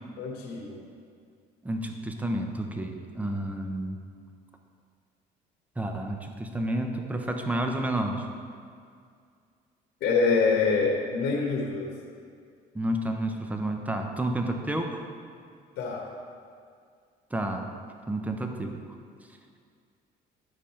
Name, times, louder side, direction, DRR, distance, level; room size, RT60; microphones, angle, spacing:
voice 1, 0.2-0.8 10.0-11.9 15.8-16.0, left 4 dB, 75° left, -2 dB, 1.3 m, -25 dB
voice 2, 1.6-4.0 5.8-8.3 12.7-15.0 17.3-17.7 18.1-18.8, right 1 dB, 10° right, 4 dB, 0.7 m, -30 dB
9.9 x 5.3 x 4.4 m, 2.2 s
cardioid pair, 110°, 17 cm